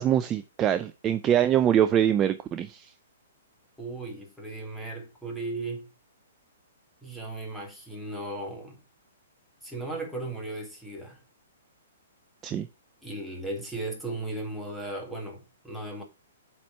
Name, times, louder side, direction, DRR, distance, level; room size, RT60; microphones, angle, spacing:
voice 1, 0.0-2.9 12.4-12.7, right 10 dB, 20° right, 0.4 m, -24 dB
voice 2, 3.8-5.9 7.0-8.8 9.6-11.2 13.0-16.0, right 2 dB, ahead, 1.9 m, -36 dB
7.3 x 4.4 x 4.5 m
hypercardioid pair, 145°, 0 cm